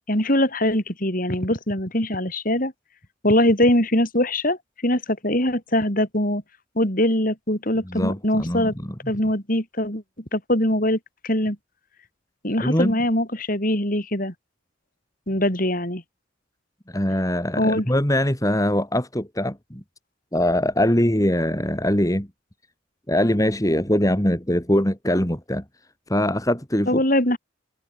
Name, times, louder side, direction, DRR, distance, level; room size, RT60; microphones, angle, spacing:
voice 1, 0.1-2.7 3.2-4.6 4.8-6.4 6.8-8.7 9.1-10.0 10.3-11.6 12.4-14.3 15.3-16.0 17.6-17.9 26.9-27.4, left 1 dB, 45° left, 6.2 m, -22 dB
voice 2, 7.8-8.9 12.6-13.0 16.9-19.8 20.3-22.3 23.1-25.6 26.1-27.0, left 1 dB, 15° left, 2.9 m, -22 dB
head